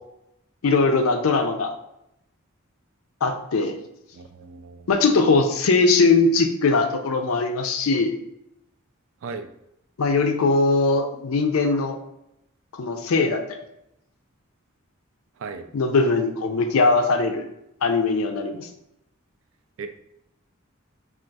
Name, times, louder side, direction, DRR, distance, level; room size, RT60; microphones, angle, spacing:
voice 1, 0.6-1.8 3.2-3.8 4.9-8.1 10.0-12.0 12.7-13.6 15.7-17.4 17.8-18.7, left 3 dB, 80° left, 6 dB, 0.4 m, -20 dB
voice 2, 4.2-4.9 9.2-9.5 15.4-15.7 19.8-19.9, right 4 dB, 65° right, 8 dB, 0.3 m, -36 dB
2.4 x 2.3 x 3.9 m, 0.81 s
head